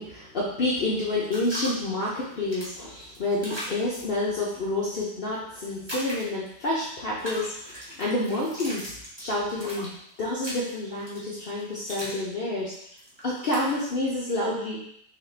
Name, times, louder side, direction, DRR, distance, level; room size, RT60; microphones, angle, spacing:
voice 1, 0.0-8.9 9.2-9.9 10.2-12.7 13.2-14.9, left 2 dB, 85° left, -6 dB, 0.5 m, -29 dB
sound 1, 1.0-1.7 2.2-4.0 5.6-6.5 7.1-12.2 12.5-13.8, equal, 20° right, 0.7 m, -39 dB
3.8 x 3.1 x 3.2 m, 0.68 s
omnidirectional pair, 1.9 m